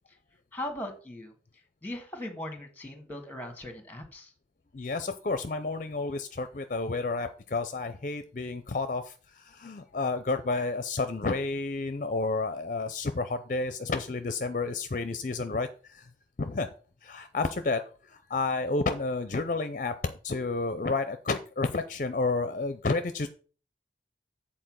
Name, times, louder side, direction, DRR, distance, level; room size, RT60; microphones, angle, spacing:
voice 1, 0.5-1.3 1.8-4.3, left 1 dB, 10° left, 6 dB, 1.4 m, -39 dB
voice 2, 4.7-16.1 16.4-16.7 17.0-23.3, left 3 dB, 45° left, 10 dB, 0.5 m, -31 dB
7.9 x 4.2 x 6.2 m, 0.38 s
head